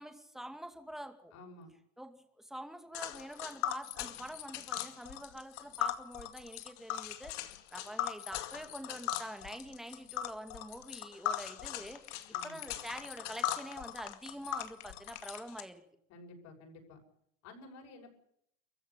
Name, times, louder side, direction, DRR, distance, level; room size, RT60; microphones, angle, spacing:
voice 1, 0.0-1.3 2.0-12.0 12.4-15.8, equal, ahead, 6 dB, 2.4 m, -46 dB
voice 2, 1.3-1.7 12.3-12.6 16.1-17.0 17.4-18.2, left 2 dB, 45° left, 2 dB, 6.6 m, -52 dB
Tick, 2.9-15.6, left 12 dB, 65° left, 2.3 m, -39 dB
24.0 x 15.5 x 9.8 m, 0.73 s
supercardioid pair, 140°, 38 cm